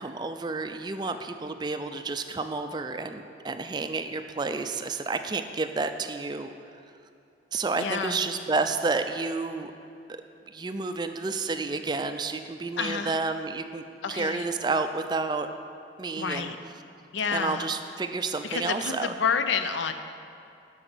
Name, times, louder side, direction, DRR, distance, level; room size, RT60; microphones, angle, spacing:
voice 1, 0.0-6.5 7.5-9.7 10.5-15.5 16.0-16.5 17.3-19.1, right 3 dB, 25° right, 8 dB, 0.3 m, -30 dB
voice 2, 7.8-8.2 12.8-13.2 14.0-14.5 16.2-16.6 17.1-17.7 18.4-19.9, left 6 dB, 85° left, 9 dB, 0.5 m, -29 dB
8.0 x 6.5 x 6.1 m, 2.6 s
head